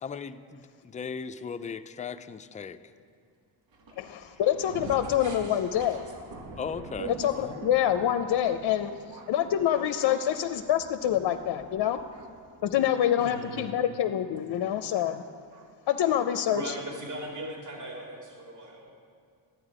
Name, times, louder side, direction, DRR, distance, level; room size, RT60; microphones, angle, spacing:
voice 1, 0.0-2.8 6.6-7.6, left 6 dB, 20° left, 10 dB, 0.3 m, -37 dB
Thunder, 3.7-13.6 14.4-14.5 15.5-15.7 16.4-16.6, right 3 dB, 70° right, 1.4 m, -47 dB
voice 2, 4.0-6.0 7.2-8.9 9.3-12.0 12.6-15.2 15.9-16.7, left 10 dB, 60° left, 9 dB, 0.6 m, -26 dB
voice 3, 5.2-6.0 7.0-7.1 9.0-9.1 10.1-10.2 12.2-12.3 13.1-13.8 16.5-18.9, right 1 dB, 40° right, -1 dB, 2.4 m, -39 dB
11.0 x 8.8 x 4.9 m, 2.3 s
cardioid pair, 75°, 46 cm